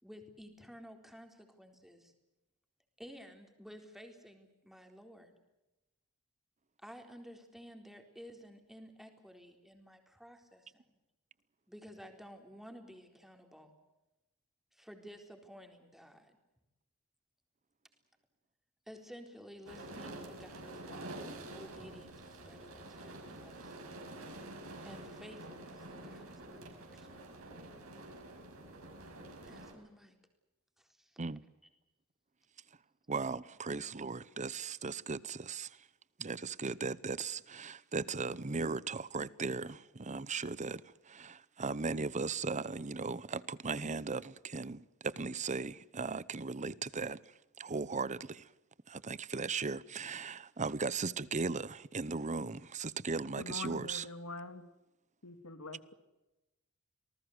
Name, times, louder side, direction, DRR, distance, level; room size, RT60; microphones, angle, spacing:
voice 1, 0.0-2.1 3.0-5.4 6.8-11.0 11.7-13.7 14.7-16.4 18.9-23.8 24.8-27.2 29.4-30.2 30.8-31.2, equal, ahead, 4.0 m, -53 dB
sound 1, 19.7-29.7, right 1 dB, 70° right, 6.1 m, -48 dB
voice 2, 33.1-35.9 36.2-47.2 47.6-48.5 48.9-54.0, right 4 dB, 35° right, 0.9 m, -37 dB
voice 3, 53.4-54.7 55.2-55.9, left 3 dB, 75° left, 2.7 m, -44 dB
27.5 x 19.0 x 8.1 m
head